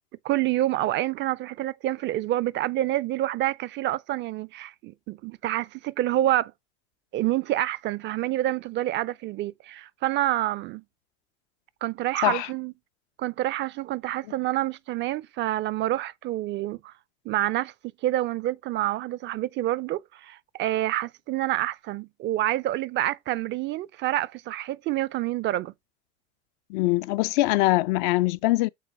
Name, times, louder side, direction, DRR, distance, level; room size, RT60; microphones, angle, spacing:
voice 1, 0.2-6.5 7.1-10.8 11.8-12.7 13.2-16.9 17.3-17.7 18.0-25.7, right 14 dB, 35° right, 0.4 m, -27 dB
voice 2, 26.7-28.7, left 19 dB, 50° left, 0.4 m, -23 dB
7.6 x 3.9 x 3.9 m
figure-of-eight pair, 65°, 34 cm